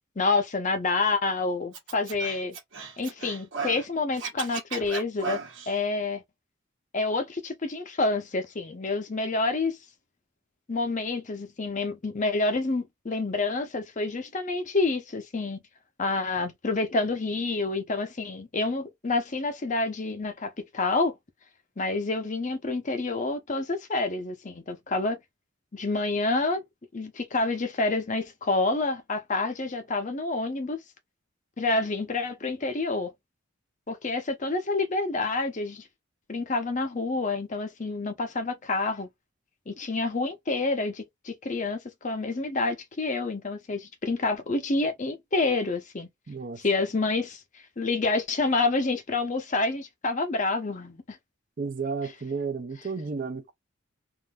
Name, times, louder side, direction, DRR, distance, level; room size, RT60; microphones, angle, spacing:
voice 1, 0.2-2.6 3.0-5.4 5.7-6.2 6.9-9.8 10.7-15.6 16.0-21.1 21.8-25.2 25.7-26.6 26.9-30.8 31.6-33.1 33.9-35.8 36.3-39.1 39.7-46.1 46.6-51.2, left 3 dB, 35° left, 0.6 m, -28 dB
Scratching (performance technique), 1.7-3.8 4.1-5.7, right 5 dB, 60° right, 1.2 m, -35 dB
voice 2, 46.3-46.6 51.6-53.5, right 4 dB, 40° right, 0.5 m, -32 dB
3.6 x 2.5 x 2.3 m
head